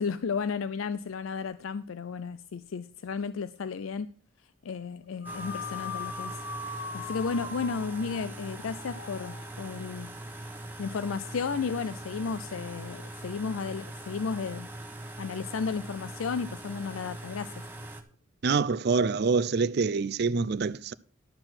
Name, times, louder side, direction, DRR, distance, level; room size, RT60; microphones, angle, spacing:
voice 1, 0.0-4.1 4.6-10.1 10.8-14.7 15.2-17.6, left 5 dB, 85° left, 0.4 m, -33 dB
sound 1, 5.2-9.7, left 4 dB, 65° left, 1.1 m, -40 dB
sound 2, 5.2-18.0, right 1 dB, 10° right, 1.1 m, -42 dB
voice 2, 18.4-20.9, right 4 dB, 55° right, 0.5 m, -26 dB
12.0 x 4.4 x 7.8 m
head